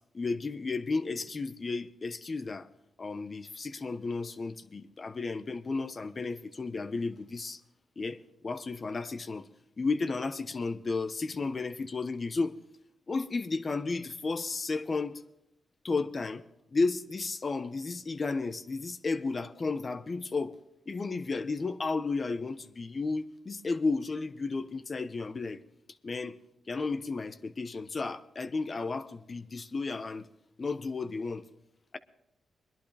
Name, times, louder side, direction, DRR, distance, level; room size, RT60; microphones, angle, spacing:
voice 1, 0.1-2.7 3.0-7.6 8.0-8.2 8.4-9.5 9.8-12.5 13.1-15.2 15.8-16.4 16.7-20.5 20.9-25.6 26.0-26.4 26.7-30.3 30.6-31.4, left 3 dB, 40° left, 0.9 m, -33 dB
21.5 x 11.5 x 3.4 m
cardioid pair, 65°, 0 cm